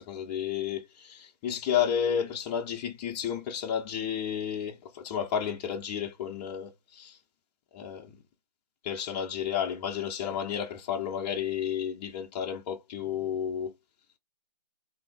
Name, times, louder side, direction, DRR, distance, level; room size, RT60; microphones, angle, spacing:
voice 1, 0.0-7.2 7.7-8.1 8.8-13.7, left 8 dB, 15° left, 0.4 m, -32 dB
3.7 x 2.5 x 3.4 m
figure-of-eight pair, 140°, 21 cm